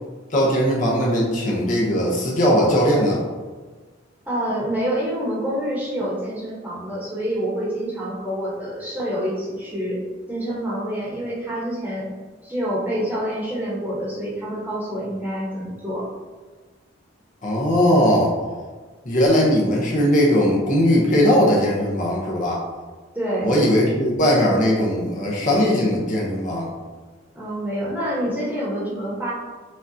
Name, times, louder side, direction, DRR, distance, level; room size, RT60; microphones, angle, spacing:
voice 1, 0.3-3.2 17.4-18.3 19.0-22.6 23.4-26.7, equal, 40° left, -4 dB, 0.7 m, -19 dB
voice 2, 4.3-10.0 10.3-12.1 12.4-16.1 23.1-23.5 27.3-29.3, equal, 10° right, -7 dB, 1.0 m, -27 dB
6.2 x 2.4 x 2.7 m, 1.4 s
head